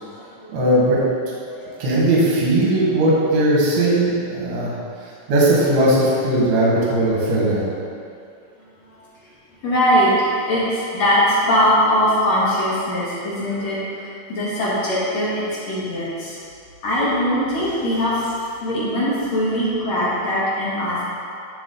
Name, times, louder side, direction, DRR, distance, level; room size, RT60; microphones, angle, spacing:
voice 1, 0.5-1.0 1.8-4.7 5.3-7.7, right 1 dB, 60° right, -5 dB, 2.0 m, -18 dB
voice 2, 1.4-1.8 6.5-6.7 8.9-9.0 9.6-16.3 16.8-18.3 18.6-21.0, equal, 60° left, -9 dB, 1.9 m, -21 dB
12.5 x 4.2 x 3.9 m, 2.4 s
omnidirectional pair, 5.6 m